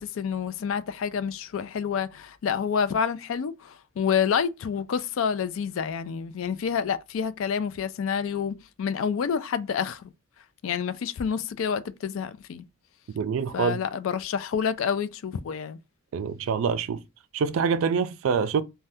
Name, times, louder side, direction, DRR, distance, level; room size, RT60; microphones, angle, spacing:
voice 1, 0.0-10.1 10.6-12.6 13.5-15.8, left 7 dB, 70° left, 0.3 m, -28 dB
voice 2, 13.1-13.8 16.1-17.0 17.3-18.6, right 6 dB, 70° right, 0.3 m, -25 dB
2.6 x 2.2 x 3.3 m
head